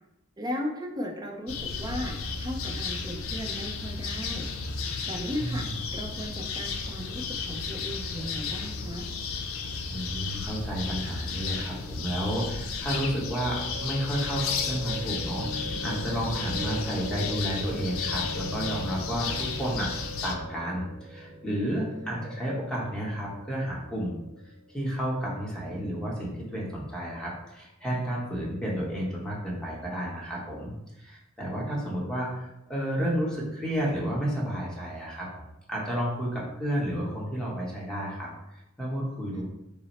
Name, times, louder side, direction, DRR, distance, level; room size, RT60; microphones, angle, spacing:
voice 1, 0.4-4.5 5.1-5.6 5.9-9.1 21.9-22.2 31.7-31.9 39.3-39.4, equal, 20° right, 1 dB, 0.6 m, -36 dB
sound 1, 1.5-20.3, left 5 dB, 80° left, 0.5 m, -33 dB
voice 2, 5.4-5.8 9.9-19.9 20.2-24.2 24.7-39.4, equal, 5° left, -5 dB, 0.9 m, -31 dB
sound 2, 13.0-25.1, equal, 85° right, 0.9 m, -40 dB
5.5 x 2.0 x 4.2 m, 0.90 s
head